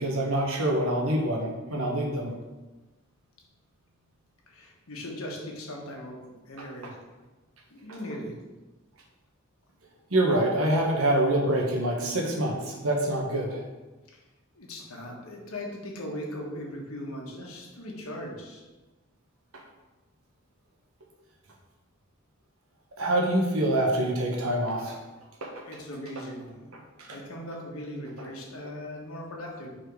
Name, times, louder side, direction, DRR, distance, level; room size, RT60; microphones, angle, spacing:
voice 1, 0.0-2.3 10.1-13.6 23.0-25.0 25.4-25.5 27.0-27.2, right 1 dB, 85° right, 0 dB, 1.3 m, -26 dB
voice 2, 4.5-6.2 6.4-7.0 7.7-8.4 14.1-14.2 14.5-18.6 25.6-26.7 27.0-29.7, left 1 dB, 85° left, -1 dB, 1.4 m, -39 dB
5.1 x 4.4 x 4.8 m, 1.2 s
head